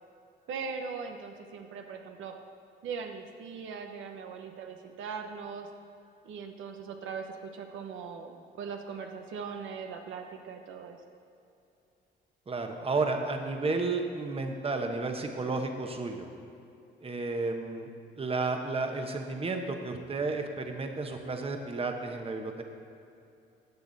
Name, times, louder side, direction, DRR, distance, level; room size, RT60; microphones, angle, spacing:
voice 1, 0.5-2.3 2.8-5.7 6.2-11.0, right 5 dB, 85° right, 4 dB, 0.8 m, -40 dB
voice 2, 12.5-16.3 17.0-17.9 18.2-22.6, right 3 dB, 30° right, 4 dB, 1.1 m, -32 dB
13.5 x 8.2 x 4.1 m, 2.7 s
cardioid pair, 90°, 20 cm